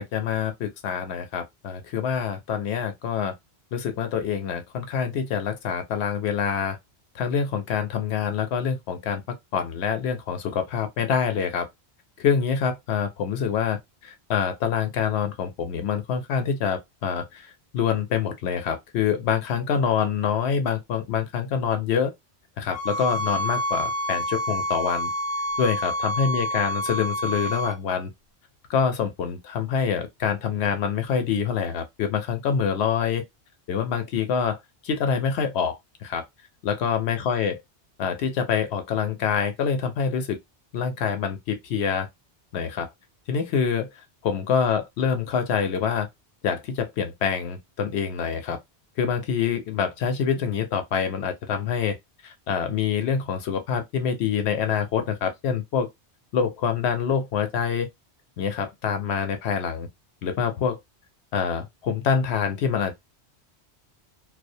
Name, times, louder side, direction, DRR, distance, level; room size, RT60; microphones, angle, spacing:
voice 1, 0.0-3.3 3.7-6.8 7.1-9.2 9.5-11.7 12.2-22.1 22.6-25.1 25.6-28.1 28.7-33.2 33.7-36.2 36.6-37.6 38.0-40.4 40.7-42.1 42.5-42.9 43.3-43.9 44.2-46.1 46.4-48.6 49.0-52.0 52.2-55.9 56.3-57.9 58.4-59.9 60.2-60.8 61.3-63.0, left 7 dB, 75° left, 0.8 m, -26 dB
sound 1, 22.7-27.7, equal, 30° left, 0.7 m, -28 dB
2.3 x 2.1 x 2.5 m
omnidirectional pair, 1.1 m